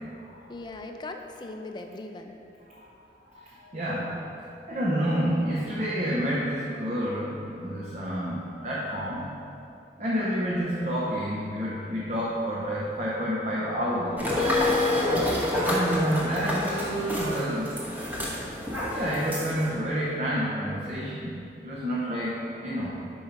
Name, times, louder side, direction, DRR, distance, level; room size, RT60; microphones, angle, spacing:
voice 1, 0.5-2.4 15.0-15.5, left 2 dB, 25° left, 5 dB, 0.4 m, -39 dB
voice 2, 3.3-4.2 4.7-9.3 10.0-14.4 15.6-17.7 18.9-22.9, equal, 40° right, -6 dB, 0.7 m, -29 dB
sound 1, 14.2-19.7, left 1 dB, 10° right, 0.9 m, -28 dB
5.4 x 5.3 x 4.5 m, 2.7 s
head